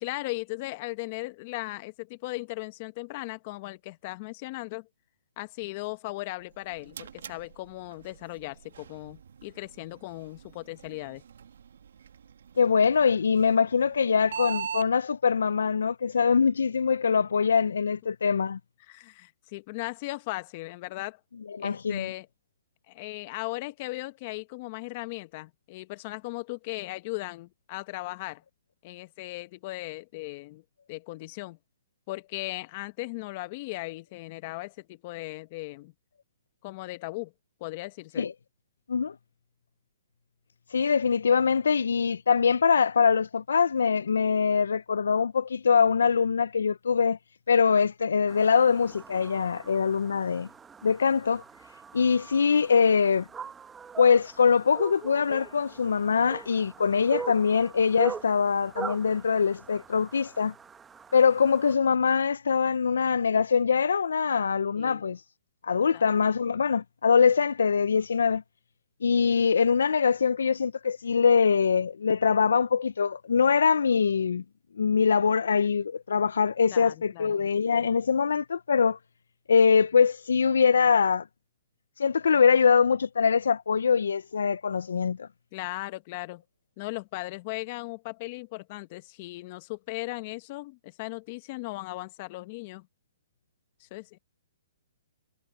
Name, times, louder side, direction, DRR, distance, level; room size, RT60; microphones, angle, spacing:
voice 1, 0.0-4.9 5.4-11.2 18.9-21.2 21.6-22.3 22.9-28.4 28.8-30.6 30.9-31.6 32.1-35.9 36.6-37.3 37.6-38.3 64.8-65.0 65.9-66.1 76.7-77.4 85.5-86.4 86.8-92.9 93.8-94.2, left 21 dB, 35° left, 1.0 m, -37 dB
sound 1, 6.4-14.9, right 7 dB, 75° right, 1.3 m, -42 dB
voice 2, 12.6-18.6 21.5-22.1 38.2-38.3 38.9-39.1 40.7-47.2 47.5-50.5 50.8-51.4 51.9-53.2 54.0-60.5 61.1-65.2 65.6-68.4 69.0-74.4 74.8-79.0 79.5-81.2 82.0-85.3, left 6 dB, 85° left, 0.4 m, -23 dB
sound 2, 48.3-61.7, right 6 dB, 10° right, 0.9 m, -42 dB
hypercardioid pair, 150°, 0 cm